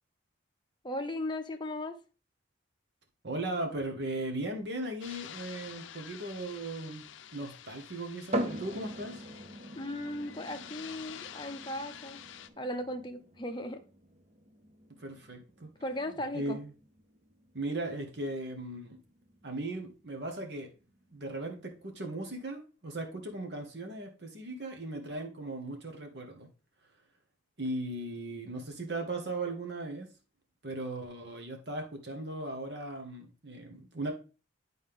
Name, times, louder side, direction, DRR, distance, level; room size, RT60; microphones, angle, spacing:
voice 1, 0.8-1.9 9.8-12.2 12.6-13.8 15.8-16.6, left 1 dB, 25° left, 5 dB, 0.6 m, -37 dB
voice 2, 3.2-9.2 15.0-15.7 16.0-16.7 17.5-19.0 19.4-20.7 21.1-26.5 27.6-30.1 30.6-34.1, right 2 dB, 60° right, 3 dB, 1.4 m, -38 dB
sound 1, 5.0-12.5, left 9 dB, 85° left, 0.5 m, -48 dB
sound 2, 8.3-21.8, right 1 dB, 35° right, 0.7 m, -43 dB
8.9 x 4.2 x 3.5 m, 0.34 s
head